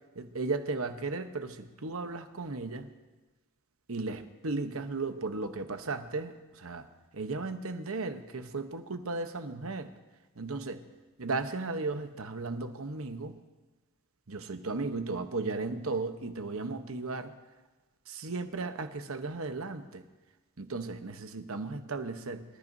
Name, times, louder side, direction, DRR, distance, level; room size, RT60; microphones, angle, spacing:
voice 1, 0.1-2.9 3.9-6.9 7.1-9.9 10.4-10.8 11.2-13.3 14.3-17.3 18.1-20.0 20.6-22.4, right 3 dB, 65° right, 8 dB, 1.0 m, -35 dB
24.5 x 14.0 x 2.7 m, 1.2 s
head